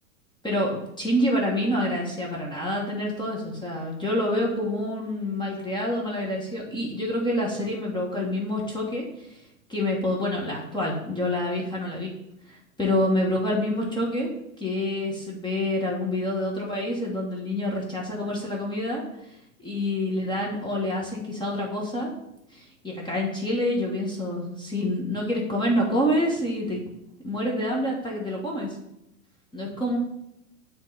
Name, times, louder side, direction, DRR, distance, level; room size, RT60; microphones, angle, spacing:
voice 1, 0.4-9.4 9.7-12.1 12.5-14.3 14.6-19.0 19.6-22.1 22.5-26.8 27.2-28.8 29.5-30.0, left 1 dB, 10° left, -3 dB, 1.4 m, -27 dB
7.9 x 3.4 x 4.0 m, 0.84 s
hypercardioid pair, 105°, 43 cm